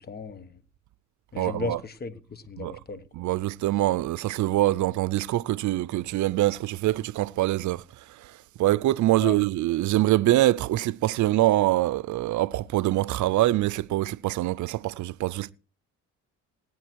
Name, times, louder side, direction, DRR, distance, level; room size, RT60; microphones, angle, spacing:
voice 1, 0.1-0.5 1.3-3.0 9.2-9.4, left 4 dB, 30° left, 1.3 m, -35 dB
voice 2, 1.4-1.8 2.6-2.8 3.1-7.8 8.6-15.5, right 15 dB, 75° right, 0.6 m, -24 dB
18.0 x 11.0 x 4.6 m
cardioid pair, 90°, 30 cm